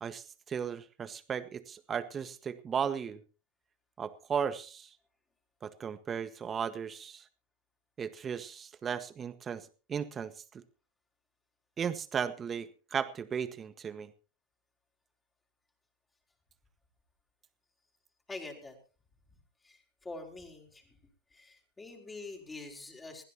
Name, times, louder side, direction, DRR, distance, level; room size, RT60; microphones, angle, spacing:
voice 1, 0.0-3.2 4.0-4.9 5.6-7.2 8.0-10.6 11.8-14.1, right 7 dB, 25° right, 11 dB, 1.6 m, -36 dB
voice 2, 18.3-18.8 19.6-21.0 21.3-23.2, left 3 dB, 15° left, 1 dB, 5.1 m, -45 dB
22.0 x 16.0 x 3.0 m, 0.35 s
hypercardioid pair, 95°, 0 cm